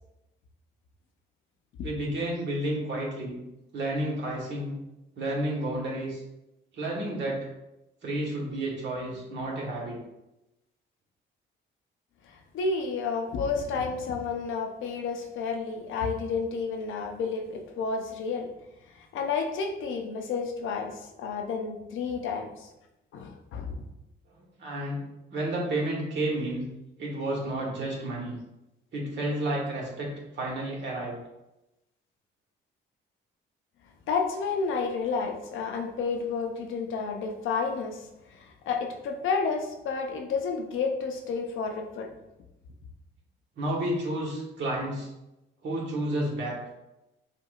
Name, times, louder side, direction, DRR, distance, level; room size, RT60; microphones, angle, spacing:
voice 1, 1.8-3.4 3.7-4.7 5.2-6.2 6.8-7.4 8.0-10.0 24.6-25.0 25.3-26.7 27.0-28.4 28.9-31.2 43.6-45.1 45.6-46.6, right 1 dB, 65° right, -3 dB, 1.5 m, -31 dB
voice 2, 12.5-18.5 19.0-22.7 23.1-23.7 34.1-38.0 38.3-42.1, left 5 dB, 80° left, 3 dB, 0.6 m, -31 dB
5.7 x 2.5 x 2.4 m, 0.94 s
cardioid pair, 90°, 20 cm